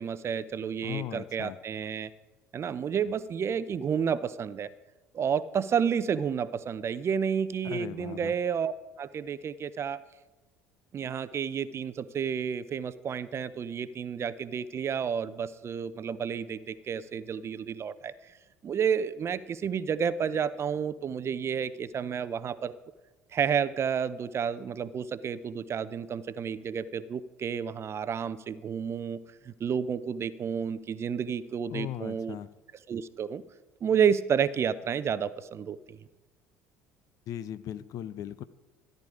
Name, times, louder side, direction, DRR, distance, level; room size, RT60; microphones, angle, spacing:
voice 1, 0.0-2.1 2.5-4.7 5.1-8.7 9.0-10.0 10.9-18.1 18.6-22.7 23.3-29.2 29.5-32.4 32.9-33.4 33.8-36.0, right 7 dB, 35° right, 15 dB, 0.6 m, -30 dB
voice 2, 0.8-1.6 7.6-8.3 31.7-32.5 37.3-38.4, left 11 dB, 50° left, 15 dB, 0.6 m, -38 dB
13.5 x 10.5 x 4.9 m, 1.1 s
figure-of-eight pair, 60°, 8 cm